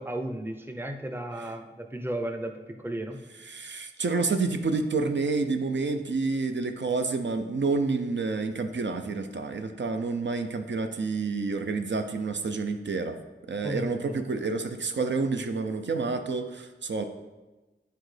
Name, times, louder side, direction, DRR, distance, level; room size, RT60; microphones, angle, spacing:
voice 1, 0.0-3.2 13.6-14.3, right 1 dB, 10° right, 5 dB, 0.6 m, -34 dB
voice 2, 3.5-13.2 13.5-17.0, right 4 dB, 70° right, 6 dB, 0.5 m, -29 dB
8.5 x 3.9 x 3.2 m, 1.2 s
wide cardioid pair, 50°, 19 cm